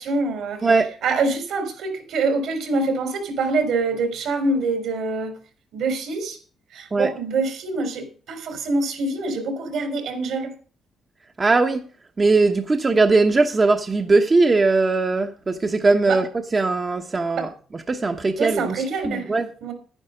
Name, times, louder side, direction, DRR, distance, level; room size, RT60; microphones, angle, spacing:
voice 1, 0.0-0.7 1.0-5.3 5.7-6.4 6.7-10.5 16.1-16.2 17.4-17.5 18.4-19.3 19.6-19.7, right 3 dB, 75° right, 3.7 m, -25 dB
voice 2, 0.6-0.9 6.9-7.1 11.4-11.9 12.2-16.3 16.5-17.5 17.9-18.7 19.1-19.5, right 3 dB, 30° right, 1.0 m, -19 dB
10.5 x 10.0 x 5.1 m
cardioid pair, 90°, 0 cm